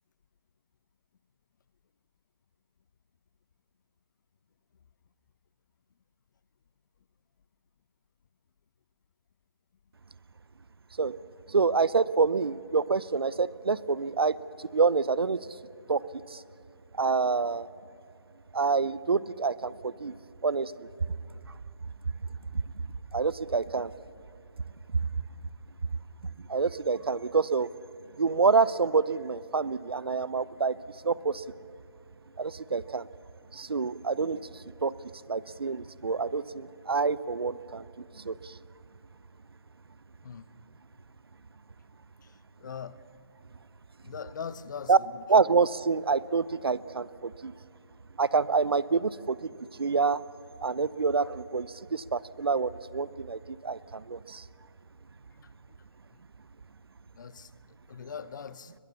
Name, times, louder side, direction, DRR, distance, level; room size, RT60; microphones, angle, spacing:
voice 1, 11.5-15.4 15.9-16.0 16.3-16.4 17.0-17.7 18.5-20.1 20.4-20.9 23.1-23.9 26.5-27.7 28.2-30.8 31.0-31.4 32.4-33.1 33.5-34.4 34.8-34.9 35.3-37.9 38.2-38.6 44.9-45.0 45.3-47.5 48.2-49.5 49.8-50.2 50.6-54.4, right 4 dB, 75° right, 0.7 m, -27 dB
voice 2, 42.2-43.0 44.0-45.2 55.4-55.5 57.1-58.8, left 7 dB, 50° left, 0.9 m, -41 dB
22.0 x 20.0 x 7.0 m
figure-of-eight pair, 145°, 13 cm